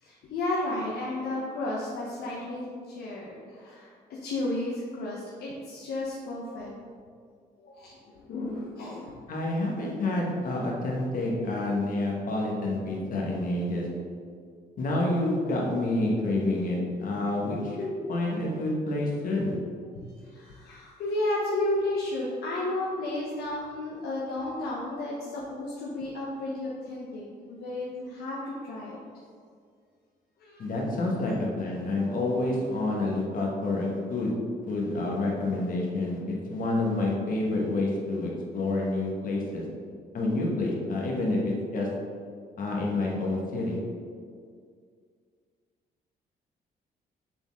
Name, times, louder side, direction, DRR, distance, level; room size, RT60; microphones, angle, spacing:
voice 1, 0.0-6.7 7.6-9.2 20.2-29.0 30.4-30.7 31.3-31.4, left 2 dB, 80° left, -4 dB, 0.9 m, -33 dB
voice 2, 9.3-13.9 14.8-19.6 30.6-34.3 34.7-39.6 40.1-41.9 42.6-43.8, left 2 dB, 60° left, -2 dB, 1.4 m, -28 dB
6.7 x 4.1 x 3.5 m, 2.1 s
cardioid pair, 105°, 16 cm